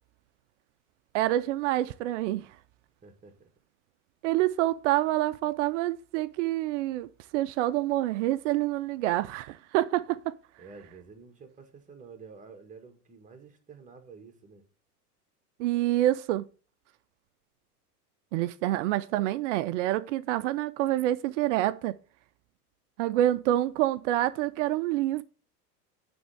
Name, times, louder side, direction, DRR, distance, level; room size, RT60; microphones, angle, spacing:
voice 1, 1.1-2.5 4.2-7.1 7.3-10.3 15.6-16.4 18.3-22.0 23.0-25.2, right 14 dB, 50° right, 0.5 m, -27 dB
voice 2, 3.0-3.5 10.6-14.6, right 5 dB, 15° right, 1.6 m, -50 dB
9.3 x 3.5 x 6.4 m
hypercardioid pair, 110°, 47 cm